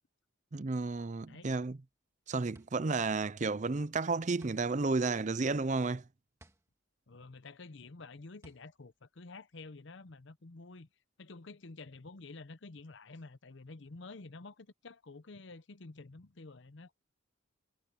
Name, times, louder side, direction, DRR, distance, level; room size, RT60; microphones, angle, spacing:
voice 1, 0.5-1.8 2.3-6.0, right 3 dB, 35° right, 0.5 m, -32 dB
sound 1, 1.8-10.1, right 1 dB, 15° right, 2.1 m, -64 dB
voice 2, 7.1-10.9 11.2-17.0, left 3 dB, 65° left, 0.8 m, -50 dB
head